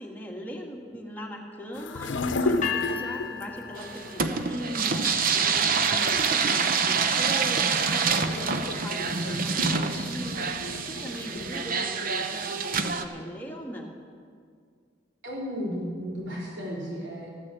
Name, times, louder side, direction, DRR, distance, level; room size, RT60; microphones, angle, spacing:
voice 1, 0.0-13.9, equal, 10° left, -1 dB, 1.7 m, -40 dB
sound 1, 1.7-11.7, left 2 dB, 90° left, 0.7 m, -35 dB
sound 2, 2.6-4.7, left 8 dB, 40° left, 1.2 m, -34 dB
sound 3, 3.8-13.0, right 5 dB, 50° right, 0.8 m, -26 dB
voice 2, 15.2-17.3, equal, 80° right, -4 dB, 3.7 m, -34 dB
14.0 x 9.8 x 7.6 m, 2.1 s
head